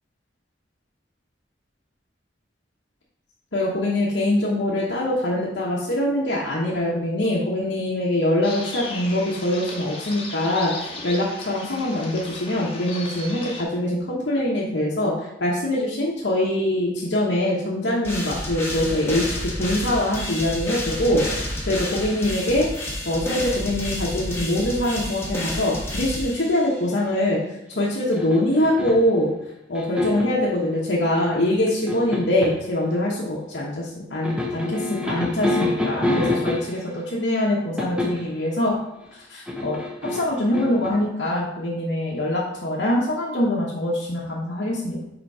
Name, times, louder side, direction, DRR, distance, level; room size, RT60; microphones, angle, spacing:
voice 1, 3.5-22.7 23.0-27.4 27.7-29.3 29.7-38.8 39.1-39.8 40.1-45.0, left 1 dB, 80° left, -5 dB, 1.2 m, -23 dB
sound 1, 8.4-13.6, left 2 dB, 30° left, 1.1 m, -36 dB
sound 2, 18.0-26.9, left 1 dB, 15° left, 1.4 m, -30 dB
sound 3, 28.1-29.1 29.7-30.4 31.4-32.6 34.2-36.9 37.8-38.3 39.5-40.9, left 2 dB, 5° right, 0.8 m, -26 dB
5.2 x 4.4 x 4.8 m, 0.85 s
head